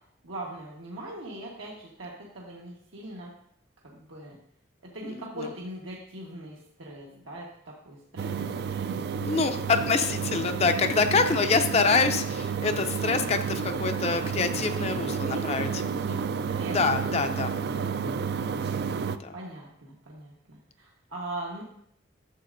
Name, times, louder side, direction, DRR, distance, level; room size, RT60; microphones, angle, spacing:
voice 1, 0.2-3.3 3.8-4.4 4.8-9.0 14.8-17.4 19.3-21.6, right 1 dB, 85° right, -4 dB, 1.4 m, -41 dB
sound 1, 8.2-19.2, right 6 dB, 55° right, 0.3 m, -31 dB
voice 2, 9.2-15.8 16.7-17.5 19.2-19.3, left 4 dB, 30° left, 7 dB, 0.4 m, -26 dB
11.5 x 7.4 x 2.6 m, 0.71 s
head